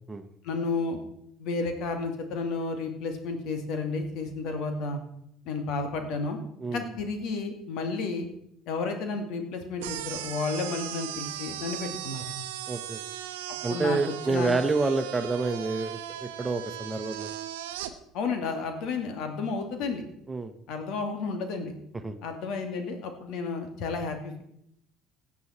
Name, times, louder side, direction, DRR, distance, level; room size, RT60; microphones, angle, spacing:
voice 1, 0.4-1.0 1.4-5.0 5.5-6.4 6.7-8.3 8.7-12.4 13.7-14.0 14.3-14.5 18.1-20.0 20.7-21.7 22.2-24.4, left 4 dB, 65° left, 6 dB, 2.4 m, -32 dB
sound 1, 9.8-17.9, right 12 dB, 80° right, 0.9 m, -38 dB
voice 2, 12.7-13.0 13.6-17.3 20.3-20.5 22.0-22.2, right 3 dB, 20° right, 9 dB, 1.2 m, -28 dB
16.5 x 8.4 x 4.4 m, 0.74 s
hypercardioid pair, 65°, 0 cm